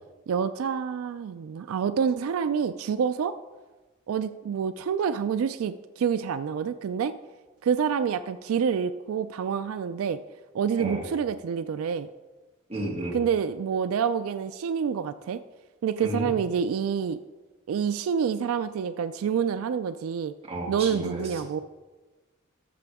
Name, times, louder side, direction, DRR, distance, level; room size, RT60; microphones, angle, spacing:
voice 1, 0.3-3.4 4.1-7.1 7.6-10.2 10.5-12.1 13.1-15.4 15.8-17.2 17.7-20.3 20.7-21.6, right 7 dB, 90° right, 12 dB, 0.3 m, -27 dB
voice 2, 10.8-11.1 12.7-13.2 16.0-16.3 20.5-21.6, right 1 dB, 30° right, -2 dB, 2.0 m, -33 dB
13.5 x 6.7 x 3.5 m, 1.2 s
head